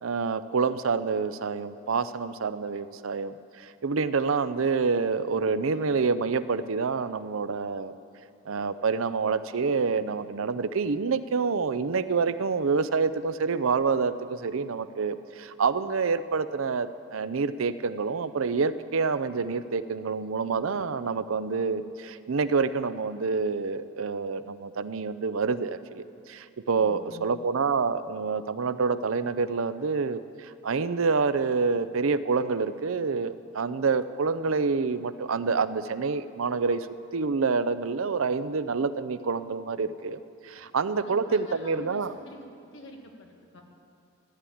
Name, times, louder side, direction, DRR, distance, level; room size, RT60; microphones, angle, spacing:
voice 1, 0.0-7.9 8.5-36.9 37.1-42.1, right 4 dB, 85° right, 13 dB, 0.6 m, -27 dB
voice 2, 26.7-27.3 40.5-40.6 41.0-43.6, left 1 dB, 65° left, 1 dB, 2.1 m, -47 dB
14.5 x 11.0 x 8.6 m, 2.6 s
head